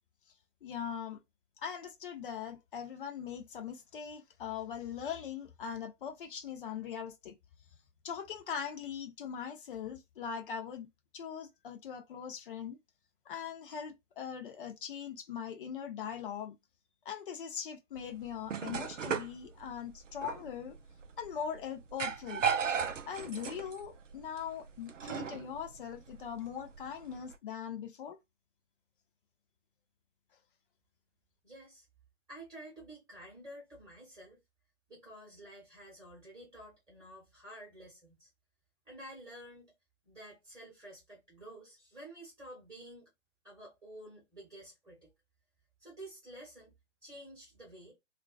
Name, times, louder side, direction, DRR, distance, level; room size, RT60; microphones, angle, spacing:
voice 1, 0.6-1.2 1.6-7.3 8.0-10.9 11.1-12.8 13.3-16.6 17.0-20.8 21.2-22.5 23.1-28.2, left 8 dB, 45° left, 0.7 m, -41 dB
sound 1, 18.0-27.4, right 6 dB, 85° right, 0.5 m, -37 dB
voice 2, 31.4-31.9 32.3-34.4 34.9-38.3 38.8-39.7 40.0-43.1 43.4-45.1 45.8-46.7 47.0-47.9, right 1 dB, 10° right, 1.0 m, -51 dB
2.4 x 2.2 x 2.3 m
figure-of-eight pair, 125°, 36 cm